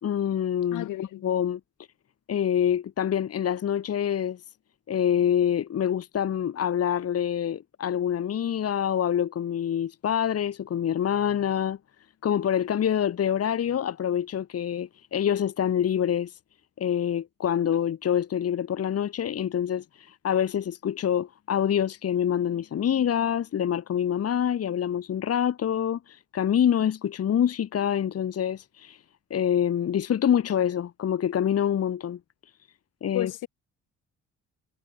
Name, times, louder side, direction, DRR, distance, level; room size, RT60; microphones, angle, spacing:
voice 1, 0.0-1.6 2.3-4.4 4.9-11.8 12.2-16.4 16.8-29.0 29.3-32.2 33.0-33.3, left 9 dB, 50° left, 1.6 m, -26 dB
voice 2, 0.7-1.2 33.1-33.5, left 15 dB, 85° left, 4.3 m, -32 dB
cardioid pair, 90°, 30 cm